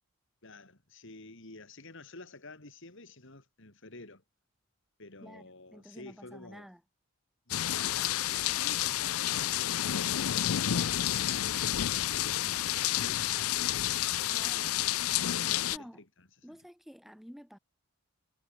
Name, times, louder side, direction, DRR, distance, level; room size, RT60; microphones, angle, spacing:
voice 1, 0.4-4.2 5.0-6.7 7.5-16.6, left 2 dB, 60° left, 2.7 m, -51 dB
voice 2, 5.2-6.8 14.3-14.8 15.7-16.0 16.4-17.6, equal, ahead, 2.4 m, -50 dB
sound 1, 7.5-15.8, left 12 dB, 75° left, 0.5 m, -30 dB
head